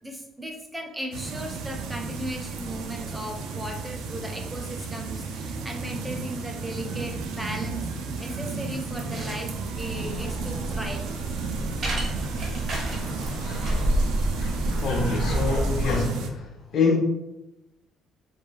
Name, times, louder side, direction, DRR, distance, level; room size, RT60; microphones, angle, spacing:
voice 1, 0.0-7.9 8.2-11.1, equal, 5° right, 2 dB, 0.4 m, -37 dB
sound 1, 1.1-16.3, right 4 dB, 85° right, 0.3 m, -33 dB
sound 2, 8.8-13.9, right 2 dB, 40° right, 0.7 m, -37 dB
sound 3, 9.7-16.1, right 1 dB, 90° left, 0.9 m, -29 dB
voice 2, 14.8-16.5 16.7-17.0, left 4 dB, 55° left, 2 dB, 0.4 m, -25 dB
2.2 x 2.2 x 3.1 m, 0.94 s
cardioid pair, 125°, 0 cm